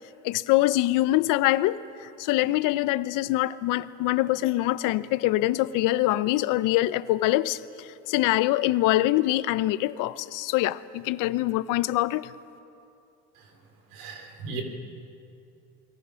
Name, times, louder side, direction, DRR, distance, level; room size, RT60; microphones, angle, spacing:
voice 1, 0.2-1.8 2.2-12.3, left 16 dB, 70° left, 0.8 m, -24 dB
voice 2, 13.9-14.6, right 5 dB, 85° right, 3.9 m, -37 dB
29.0 x 21.5 x 6.4 m
supercardioid pair, 110°, 33 cm